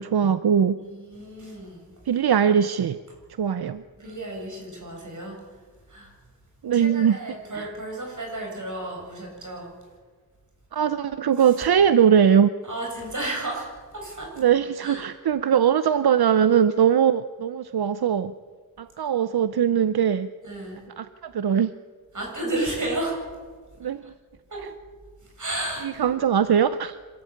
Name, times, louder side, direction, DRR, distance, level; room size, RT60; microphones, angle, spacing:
voice 1, 0.0-0.8 2.1-3.0 3.4-3.8 6.6-7.2 7.5-7.7 10.7-12.5 14.4-18.3 18.8-20.3 21.0-21.7 23.8-24.0 25.8-27.0, right 8 dB, 85° right, 12 dB, 0.7 m, -21 dB
voice 2, 0.8-1.9 4.0-5.4 5.9-6.1 6.7-9.7 12.6-14.4 14.8-15.1 20.4-20.8 22.1-23.4 24.5-24.7 25.3-25.9, right 1 dB, 55° right, 0 dB, 7.8 m, -32 dB
26.0 x 13.5 x 8.7 m, 1.5 s
wide cardioid pair, 80°, 37 cm